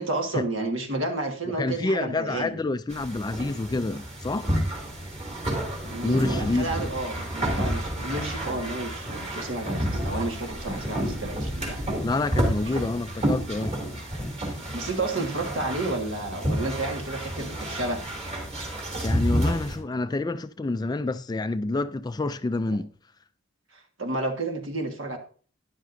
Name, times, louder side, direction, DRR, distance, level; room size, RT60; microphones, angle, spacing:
voice 1, 0.0-2.6 5.9-11.8 12.6-12.9 14.7-18.0 22.7-22.8 23.7-25.2, right 2 dB, 70° right, 1.7 m, -31 dB
voice 2, 1.6-4.5 6.0-6.7 11.0-11.1 12.0-13.8 19.0-22.9, left 2 dB, 20° left, 0.3 m, -28 dB
sound 1, 2.9-19.8, equal, 35° right, 3.0 m, -30 dB
12.5 x 10.5 x 2.7 m
head